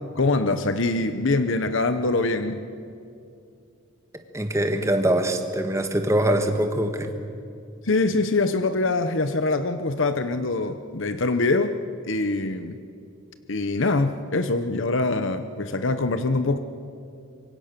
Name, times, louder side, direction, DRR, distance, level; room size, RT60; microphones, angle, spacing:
voice 1, 0.2-2.6 7.8-11.8 12.1-12.8 13.5-16.6, left 3 dB, 60° left, 10 dB, 0.9 m, -24 dB
voice 2, 4.3-7.1, right 1 dB, 15° right, 6 dB, 1.6 m, -23 dB
26.0 x 23.5 x 6.8 m, 2.5 s
head